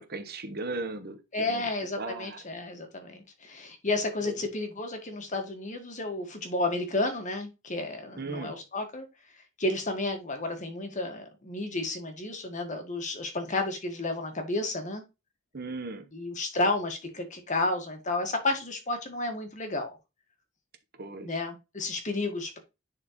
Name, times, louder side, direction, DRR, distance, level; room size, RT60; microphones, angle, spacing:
voice 1, 0.0-1.2 1.5-1.6 2.0-2.4 4.2-4.4 8.1-8.5 15.5-16.1 21.0-21.4, right 3 dB, 50° right, 1.1 m, -37 dB
voice 2, 1.3-9.1 9.6-15.0 16.1-20.0 21.2-22.6, left 2 dB, 40° left, 1.7 m, -32 dB
10.5 x 4.3 x 3.1 m
head